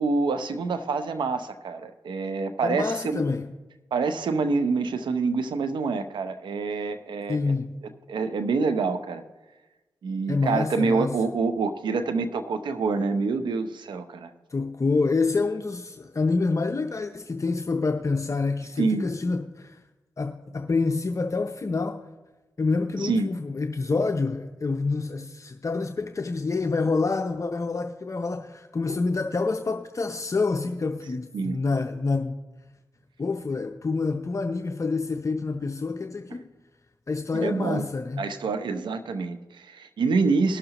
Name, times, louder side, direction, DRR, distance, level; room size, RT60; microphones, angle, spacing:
voice 1, 0.0-3.2 3.9-7.4 8.1-9.2 10.0-14.3 18.8-19.1 23.0-23.3 31.3-31.6 37.3-37.9 38.2-40.6, right 4 dB, 85° right, 0.7 m, -26 dB
voice 2, 2.6-3.5 7.3-7.7 10.3-11.2 14.5-19.8 20.2-22.0 22.6-32.4 33.2-36.5 37.1-38.3, left 3 dB, 40° left, 0.6 m, -27 dB
20.0 x 6.6 x 2.9 m
cardioid pair, 45°, 8 cm